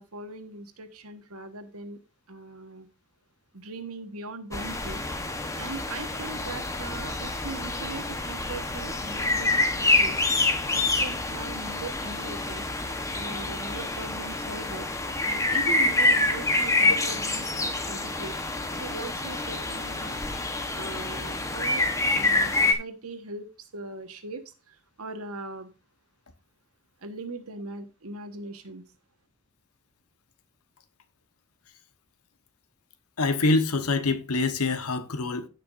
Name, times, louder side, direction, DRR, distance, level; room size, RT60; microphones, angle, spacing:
voice 1, 0.0-2.0 2.3-2.9 3.5-5.0 5.6-10.2 10.7-12.7 13.1-14.9 15.3-18.3 18.8-20.2 20.7-23.5 23.7-25.7 27.0-28.9, right 2 dB, 75° right, 1.3 m, -40 dB
sound 1, 4.5-22.7, left 2 dB, 15° left, 1.0 m, -27 dB
voice 2, 33.2-35.5, left 3 dB, 80° left, 1.1 m, -25 dB
16.0 x 6.0 x 2.5 m
head